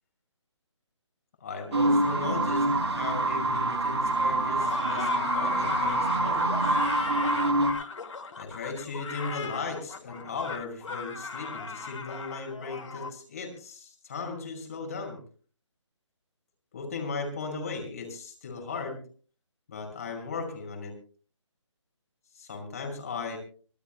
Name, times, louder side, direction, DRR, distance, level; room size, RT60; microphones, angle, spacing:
voice 1, 1.4-6.8 8.4-15.2 16.7-19.0 19.7-20.9 22.3-23.4, left 4 dB, 30° left, 3 dB, 5.9 m, -37 dB
sound 1, 1.7-7.7, right 2 dB, 60° right, 6.0 m, -26 dB
sound 2, 4.6-13.1, left 4 dB, 75° left, 2.7 m, -35 dB
26.0 x 18.5 x 2.2 m, 0.41 s
hypercardioid pair, 180°, 16 cm